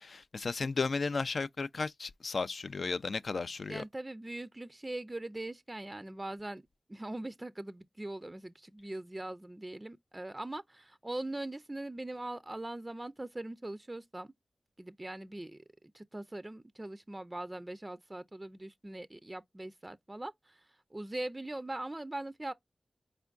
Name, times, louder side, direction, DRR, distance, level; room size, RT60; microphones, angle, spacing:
voice 1, 0.0-3.8, left 4 dB, 65° left, 0.3 m, -34 dB
voice 2, 3.7-6.6 6.9-14.3 14.8-15.6 15.9-22.5, right 1 dB, 25° right, 0.4 m, -41 dB
4.4 x 3.4 x 2.4 m
cardioid pair, 55°, 0 cm